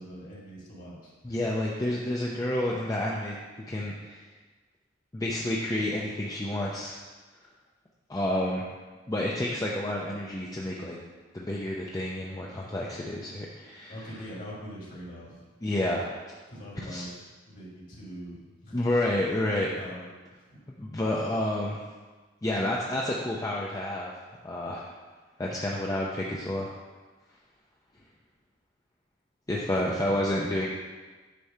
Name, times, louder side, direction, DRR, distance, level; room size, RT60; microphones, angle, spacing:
voice 1, 0.0-1.4 13.9-15.5 16.5-18.9 19.4-20.1 20.5-20.6 29.5-30.3, equal, 45° left, -5 dB, 1.9 m, -43 dB
voice 2, 1.2-3.4 3.7-4.2 5.1-7.0 8.1-8.6 9.1-11.0 11.3-13.9 15.6-16.1 16.9-17.0 18.7-19.7 20.8-21.8 22.4-24.1 24.4-24.9 25.4-26.7 29.5-30.7, left 1 dB, 20° left, -4 dB, 0.5 m, -29 dB
8.4 x 3.1 x 5.4 m, 1.3 s
head